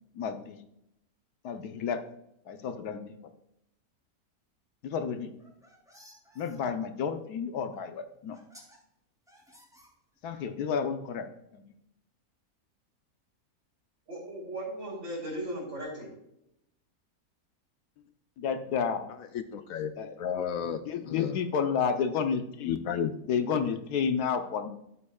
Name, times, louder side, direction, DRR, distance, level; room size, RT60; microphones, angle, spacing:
voice 1, 0.1-0.6 1.4-2.0 2.5-3.2 4.8-5.3 6.3-8.4 10.2-11.3 11.5-11.6 18.4-19.1 20.0-20.1 20.8-24.7, left 6 dB, 90° left, 1.4 m, -31 dB
sound 1, 5.3-6.6 7.7-7.8 8.3-8.8 9.3-10.3, equal, ahead, 3.0 m, -56 dB
voice 2, 14.1-16.1, right 1 dB, 50° right, 3.9 m, -37 dB
voice 3, 19.3-19.9 20.2-20.8 21.1-21.4 22.6-23.1, left 8 dB, 70° left, 0.9 m, -32 dB
12.5 x 7.7 x 2.4 m
omnidirectional pair, 1.6 m